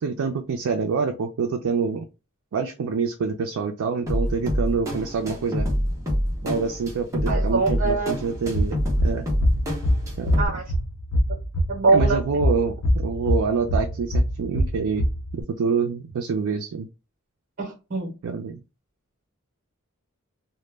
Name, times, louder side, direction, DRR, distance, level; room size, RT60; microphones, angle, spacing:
voice 1, 0.0-2.1 2.5-5.7 6.4-9.3 10.2-10.4 11.9-15.0 15.3-16.9 18.2-18.6, right 5 dB, 80° right, 0.4 m, -26 dB
sound 1, 4.1-10.5, equal, 15° right, 0.7 m, -26 dB
voice 2, 7.3-8.1 10.4-10.6 11.7-12.2 17.6-18.1, right 3 dB, 45° right, 0.9 m, -23 dB
sound 2, 8.3-15.4, equal, 60° left, 0.6 m, -24 dB
2.1 x 2.0 x 3.2 m
head